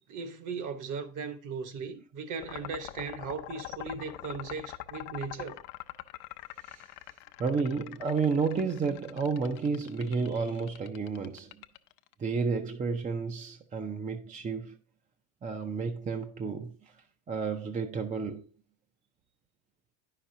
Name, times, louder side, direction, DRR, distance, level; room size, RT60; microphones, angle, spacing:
voice 1, 0.1-5.6, right 5 dB, 45° right, 1.0 m, -38 dB
sound 1, 2.4-12.1, left 16 dB, 60° left, 0.6 m, -44 dB
voice 2, 7.4-11.6 12.2-14.8 15.4-16.8 17.3-18.5, right 5 dB, 20° right, 0.4 m, -31 dB
9.4 x 5.8 x 2.6 m
supercardioid pair, 105°, 43 cm